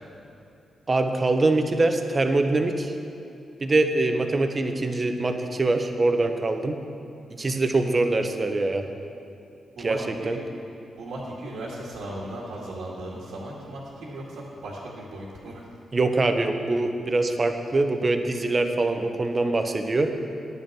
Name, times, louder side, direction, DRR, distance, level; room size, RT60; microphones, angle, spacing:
voice 1, 0.9-2.9 3.6-6.7 7.3-8.9 9.8-10.0 10.2-10.4 15.9-20.1, right 2 dB, 40° right, 6 dB, 1.2 m, -23 dB
voice 2, 9.8-10.4 11.0-15.6, right 1 dB, 80° right, -6 dB, 2.1 m, -37 dB
11.0 x 9.1 x 6.2 m, 2.7 s
hypercardioid pair, 40°, 0 cm